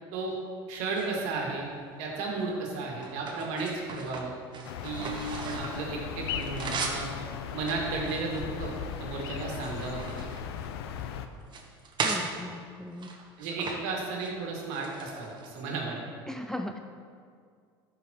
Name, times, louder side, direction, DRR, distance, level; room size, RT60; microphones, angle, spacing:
voice 1, 0.7-1.7 2.0-4.3 4.8-7.1 7.5-8.7 9.0-10.3 13.4-16.0, right 3 dB, 65° right, -1 dB, 1.8 m, -34 dB
sound 1, 0.8-1.8 2.4-5.9 6.2-7.1 7.6-8.9 9.3-11.0 11.4-12.3 12.9-13.8 14.0-14.3 14.7-15.7, right 4 dB, 35° right, 1.1 m, -37 dB
sound 2, 4.6-11.3, left 8 dB, 75° left, 0.5 m, -37 dB
voice 2, 12.0-13.2 16.3-16.8, left 1 dB, 5° left, 5 dB, 0.4 m, -37 dB
12.0 x 5.1 x 3.0 m, 2.1 s
hypercardioid pair, 80°, 13 cm